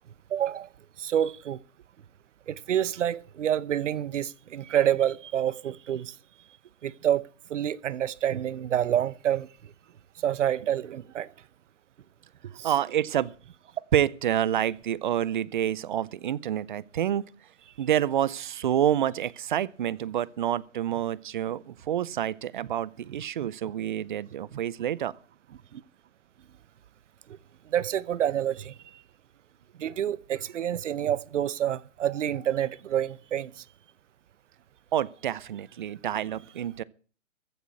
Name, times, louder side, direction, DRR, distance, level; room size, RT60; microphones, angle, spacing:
voice 1, 0.3-0.7 1.0-1.6 2.5-6.1 6.8-7.2 7.5-9.5 10.2-11.3 12.6-12.7 23.4-23.5 25.7-25.8 27.7-28.8 29.8-33.6, right 10 dB, 65° right, 0.8 m, -28 dB
voice 2, 12.4-13.3 13.9-17.2 17.8-25.1 34.9-36.8, right 10 dB, 40° right, 0.6 m, -28 dB
15.0 x 6.4 x 8.4 m
hypercardioid pair, 155°, 39 cm